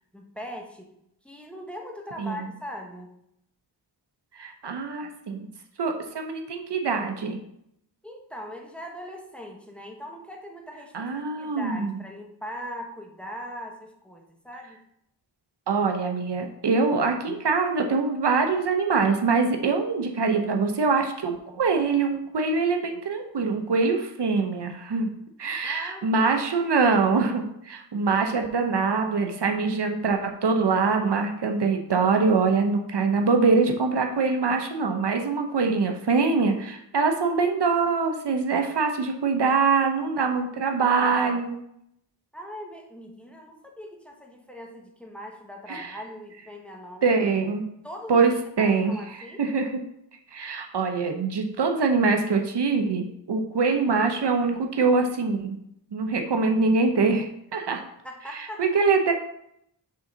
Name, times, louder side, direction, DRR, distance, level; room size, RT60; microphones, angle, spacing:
voice 1, 0.1-0.9 1.2-3.1 8.0-11.1 11.4-14.8 25.6-26.7 42.3-47.1 47.8-48.3 48.5-49.4 58.0-58.6, equal, 5° left, 1 dB, 1.1 m, -40 dB
voice 2, 4.3-5.5 5.8-7.4 10.9-11.9 15.7-25.1 25.4-41.6 45.7-45.9 47.0-47.7 48.1-48.3 48.6-49.7 50.3-55.6 55.9-57.8 58.3-59.1, right 4 dB, 70° right, 4 dB, 0.9 m, -24 dB
5.5 x 3.8 x 5.5 m, 0.76 s
wide cardioid pair, 85°, 43 cm